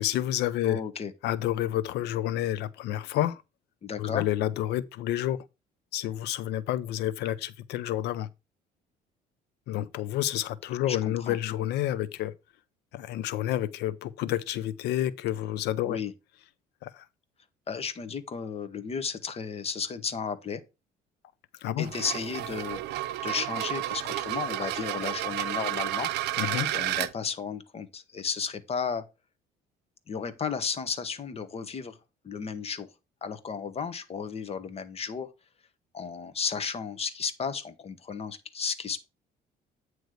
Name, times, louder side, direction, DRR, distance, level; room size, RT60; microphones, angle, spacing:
voice 1, 0.0-0.8 1.2-3.4 4.0-5.4 5.9-8.3 9.7-12.3 12.9-16.0 16.8-17.0 21.6-21.9 26.4-26.7, left 13 dB, 80° left, 0.7 m, -29 dB
voice 2, 0.6-1.1 3.8-4.2 10.9-11.3 15.8-16.1 17.7-20.6 21.8-22.8 23.2-26.1 26.7-29.0 30.1-32.0 32.2-32.9 33.2-35.3 35.9-39.1, left 6 dB, 35° left, 1.1 m, -33 dB
sound 1, 21.8-27.1, right 14 dB, 80° right, 0.6 m, -31 dB
9.2 x 3.2 x 6.4 m
cardioid pair, 110°, 17 cm